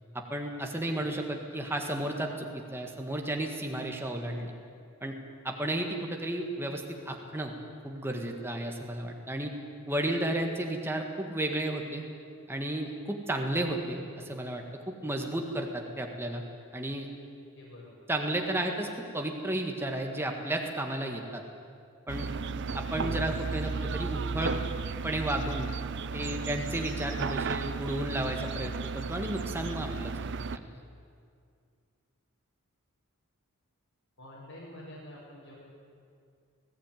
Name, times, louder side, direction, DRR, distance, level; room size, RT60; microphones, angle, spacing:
voice 1, 0.1-4.5 5.0-5.1 5.4-7.5 7.8-9.5 9.9-12.0 12.5-16.4 16.7-17.1 18.1-21.4 22.1-22.3 22.7-24.5 25.0-25.7 26.1-30.1 30.5-30.7, right 1 dB, 10° right, 2 dB, 1.7 m, -33 dB
voice 2, 17.5-17.9 34.2-35.5, left 1 dB, 65° left, -8 dB, 5.4 m, -47 dB
sound 1, 22.1-30.6, right 4 dB, 55° right, 0.6 m, -34 dB
20.0 x 15.5 x 9.3 m, 2.4 s
head